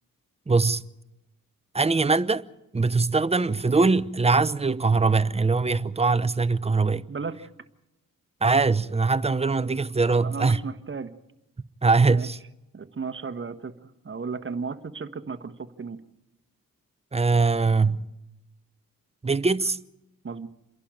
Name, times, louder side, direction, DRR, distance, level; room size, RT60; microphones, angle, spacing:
voice 1, 0.5-0.8 1.7-2.4 2.7-7.0 8.4-10.6 11.8-12.4 17.1-18.1 19.2-19.8, right 4 dB, 20° right, 0.8 m, -22 dB
voice 2, 10.2-11.1 12.0-12.3 12.7-13.7 14.0-16.0 20.2-20.5, right 5 dB, 35° right, 1.4 m, -34 dB
28.0 x 11.5 x 9.0 m
cardioid pair, 75°, 34 cm